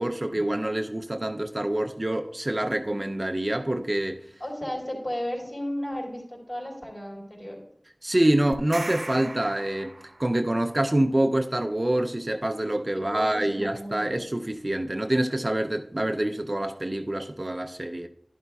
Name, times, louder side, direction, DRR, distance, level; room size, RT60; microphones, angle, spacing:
voice 1, 0.0-4.2 8.0-9.9 10.2-18.1, right 1 dB, 35° right, 0.5 m, -26 dB
voice 2, 4.4-7.6 12.9-14.2, equal, 35° left, 3.9 m, -34 dB
sound 1, 8.5-10.5, right 2 dB, 60° right, 0.8 m, -38 dB
11.0 x 11.0 x 2.3 m
wide cardioid pair, 45°, 0 cm